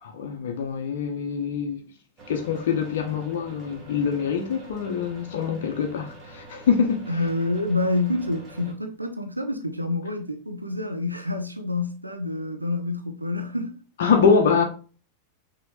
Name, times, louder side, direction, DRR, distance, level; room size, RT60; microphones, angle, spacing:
voice 1, 0.0-1.8 2.3-7.1 14.0-14.6, left 6 dB, 60° left, 0.7 m, -24 dB
sound 1, 2.2-8.7, right 2 dB, 25° right, 1.6 m, -46 dB
voice 2, 7.1-13.8, left 2 dB, 85° right, 0.6 m, -27 dB
5.9 x 2.9 x 3.1 m
figure-of-eight pair, 90°, 0 cm